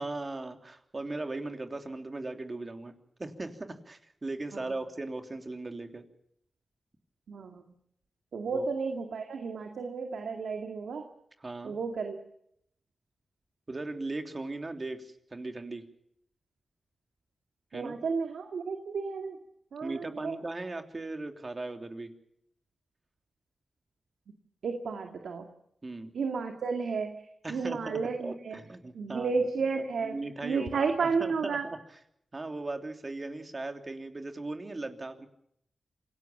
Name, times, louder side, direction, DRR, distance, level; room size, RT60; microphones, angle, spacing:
voice 1, 0.0-2.9 3.2-6.0 8.5-8.6 11.4-11.7 13.7-15.8 17.7-18.0 19.8-22.1 25.8-26.1 27.4-29.3 30.0-31.8 32.3-35.3, right 2 dB, 40° right, 5 dB, 3.2 m, -38 dB
voice 2, 7.3-7.6 8.3-11.1 11.6-12.2 17.7-19.4 19.7-20.4 24.6-25.5 26.1-27.1 27.5-28.6 28.9-31.7, right 5 dB, 90° right, 4 dB, 2.2 m, -32 dB
27.5 x 18.0 x 7.2 m, 0.74 s
cardioid pair, 60°, 0 cm